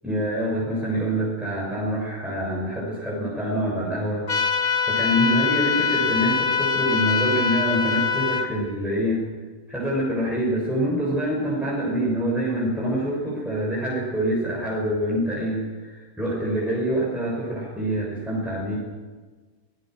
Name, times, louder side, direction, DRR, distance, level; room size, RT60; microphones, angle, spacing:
voice 1, 0.0-4.3 4.9-9.3 9.7-18.8, equal, ahead, -6 dB, 7.1 m, -25 dB
sound 1, 4.3-8.5, left 6 dB, 75° left, 2.4 m, -23 dB
25.5 x 20.5 x 6.5 m, 1.4 s
omnidirectional pair, 1.5 m